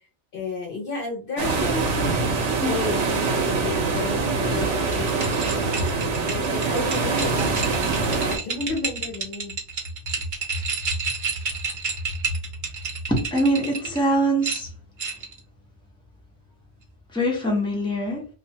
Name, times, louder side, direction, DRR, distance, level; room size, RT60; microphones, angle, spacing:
voice 1, 0.3-5.6 5.9-9.6, left 3 dB, 55° left, -1 dB, 0.7 m, -33 dB
sound 1, 1.4-8.4, right 4 dB, 85° right, 0.9 m, -24 dB
sound 2, 4.8-14.0 14.4-15.4, right 3 dB, 50° right, 0.8 m, -30 dB
voice 2, 13.1-14.7 17.1-18.3, right 1 dB, 5° left, -2 dB, 0.6 m, -23 dB
2.3 x 2.2 x 2.7 m, 0.37 s
omnidirectional pair, 1.2 m